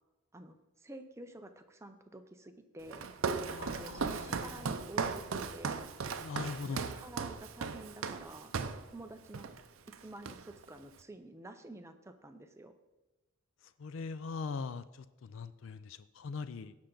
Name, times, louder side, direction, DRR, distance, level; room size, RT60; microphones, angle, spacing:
voice 1, 0.3-3.1 3.8-5.9 6.6-8.5 8.9-9.5 10.0-12.7, right 2 dB, 15° right, 7 dB, 0.6 m, -49 dB
Walk footsteps, 2.9-8.9 9.3-9.6 9.9-10.7, right 5 dB, 70° right, 0.6 m, -37 dB
voice 2, 3.5-4.8 6.2-6.9 13.6-16.8, left 4 dB, 65° left, 14 dB, 0.4 m, -41 dB
16.5 x 5.8 x 3.9 m, 1.1 s
head